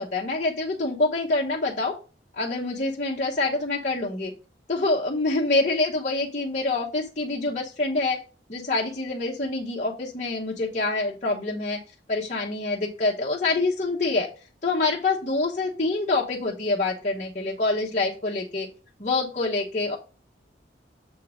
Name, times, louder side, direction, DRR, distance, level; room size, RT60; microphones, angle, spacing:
voice 1, 0.0-1.9 2.4-4.3 4.7-8.2 8.5-11.8 12.1-14.3 14.6-18.7 19.0-20.0, left 2 dB, 40° left, -4 dB, 1.1 m, -26 dB
7.1 x 3.8 x 4.9 m, 0.35 s
head